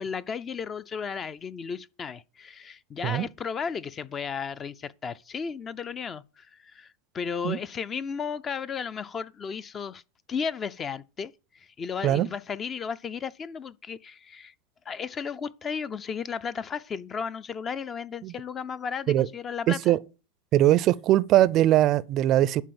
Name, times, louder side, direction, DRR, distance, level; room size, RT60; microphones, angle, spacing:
voice 1, 0.0-10.0 10.3-14.5 14.9-20.0, left 6 dB, 25° left, 0.5 m, -34 dB
voice 2, 19.7-20.0 20.5-22.6, right 13 dB, 45° right, 0.5 m, -21 dB
11.0 x 4.7 x 7.0 m
hypercardioid pair, 115°, 0 cm